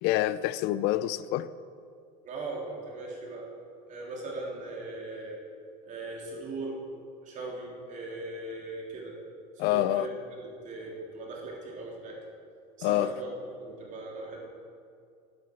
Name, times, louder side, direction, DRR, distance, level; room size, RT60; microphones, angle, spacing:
voice 1, 0.0-1.5 9.6-10.1 12.8-13.1, left 14 dB, 65° left, 0.5 m, -26 dB
voice 2, 2.2-3.5 3.9-5.4 5.8-6.8 7.2-9.1 9.6-10.1 10.4-12.2 12.8-13.3 13.6-14.5, right 2 dB, 45° right, 3.7 m, -39 dB
12.5 x 9.4 x 6.4 m
cardioid pair, 130°, 18 cm